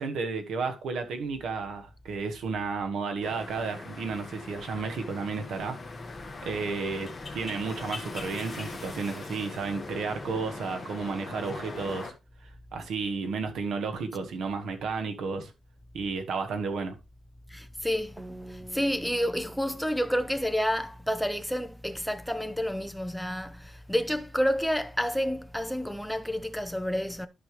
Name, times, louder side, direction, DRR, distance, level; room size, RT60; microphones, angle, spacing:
voice 1, 0.0-5.8 6.4-12.1 12.7-15.5 15.9-16.9, right 4 dB, 85° right, 1.4 m, -32 dB
sound 1, 3.2-12.1, left 3 dB, 20° left, 1.4 m, -41 dB
voice 2, 17.5-27.3, equal, ahead, 0.5 m, -29 dB
sound 2, 18.2-21.4, right 2 dB, 40° right, 2.1 m, -49 dB
11.5 x 5.6 x 3.1 m
wide cardioid pair, 170°, 0 cm